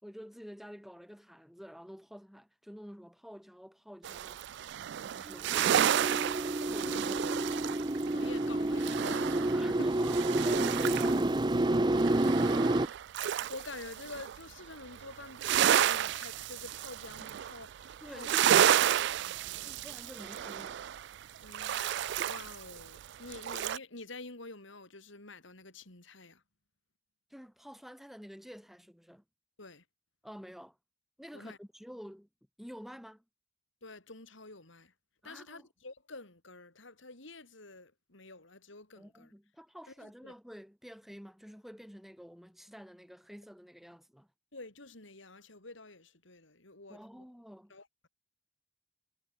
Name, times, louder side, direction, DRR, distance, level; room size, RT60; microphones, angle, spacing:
voice 1, 0.0-4.6 5.0-6.1 6.6-7.2 9.5-12.6 18.0-19.0 19.6-20.9 27.3-29.2 30.2-30.8 31.2-32.3 32.6-33.2 35.2-35.7 39.0-44.3 46.9-47.7, equal, ahead, 5.9 m, -49 dB
sound 1, 4.0-11.3 11.6-14.4 14.7-23.8, right 10 dB, 60° right, 0.3 m, -31 dB
sound 2, 5.3-12.9, right 1 dB, 20° right, 0.7 m, -29 dB
voice 2, 6.8-7.3 8.0-9.9 13.2-18.3 18.6-20.0 21.4-26.4 29.6-29.8 31.3-31.6 33.8-34.9 35.2-39.3 40.0-40.3 44.5-47.2 47.7-48.1, left 2 dB, 65° left, 3.7 m, -48 dB
head